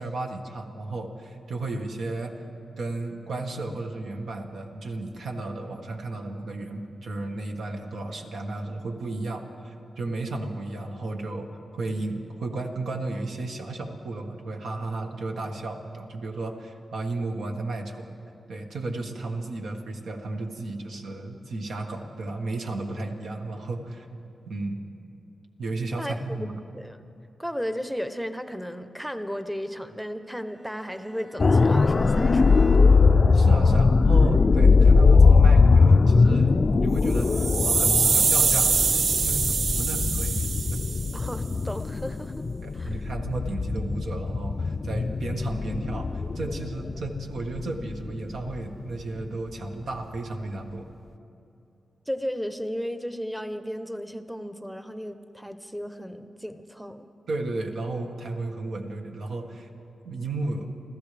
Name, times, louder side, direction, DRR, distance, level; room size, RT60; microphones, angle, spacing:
voice 1, 0.0-2.4 2.8-18.1 18.5-24.1 24.5-24.8 25.6-26.5 33.3-40.5 42.6-50.8 57.3-59.7 60.0-60.7, right 2 dB, 80° right, 3 dB, 1.5 m, -33 dB
voice 2, 27.4-32.7 33.6-33.9 41.1-43.0 52.1-57.0, equal, 5° right, 9 dB, 0.8 m, -34 dB
Bowed string instrument, 30.0-33.1, right 1 dB, 35° right, 2.9 m, -48 dB
sound 1, 31.4-49.3 49.6-49.8, left 4 dB, 40° left, 0.4 m, -20 dB
sound 2, 37.1-41.3, right 5 dB, 55° right, 0.4 m, -24 dB
29.5 x 14.0 x 3.4 m, 2.7 s
cardioid pair, 90°, 0 cm